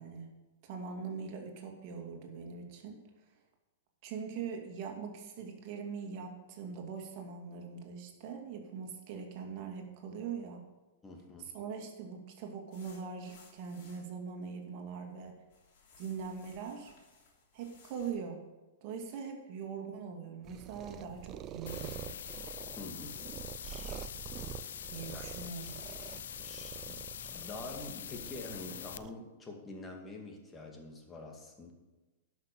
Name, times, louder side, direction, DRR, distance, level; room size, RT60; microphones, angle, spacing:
voice 1, 0.0-3.1 4.0-10.7 11.4-15.4 16.0-16.9 17.5-18.5 18.8-22.2 24.9-25.8, right 6 dB, 50° right, 3 dB, 2.3 m, -42 dB
voice 2, 11.0-11.5 22.7-23.1 24.6-24.7 25.1-25.5 26.4-27.0 27.3-31.7, left 2 dB, 15° left, 1 dB, 2.2 m, -46 dB
sound 1, 12.7-14.1 14.7-15.2 15.5-18.1, left 4 dB, 55° left, 3.4 m, -61 dB
sound 2, 20.4-29.1, right 10 dB, 30° right, 0.5 m, -46 dB
sound 3, 21.7-29.0, left 9 dB, 75° left, 0.5 m, -44 dB
11.5 x 6.2 x 6.7 m, 1.1 s
hypercardioid pair, 125°, 0 cm